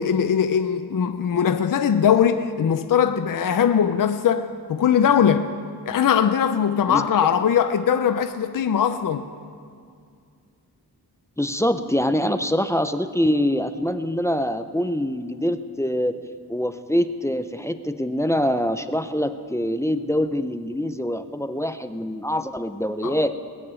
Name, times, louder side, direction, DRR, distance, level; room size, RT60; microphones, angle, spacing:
voice 1, 0.0-5.5 5.9-9.2 23.0-23.2, left 8 dB, 55° left, 0.5 m, -20 dB
voice 2, 11.4-16.1 16.5-23.3, equal, 5° left, 0.4 m, -24 dB
20.5 x 6.8 x 8.8 m
wide cardioid pair, 135°, 40 cm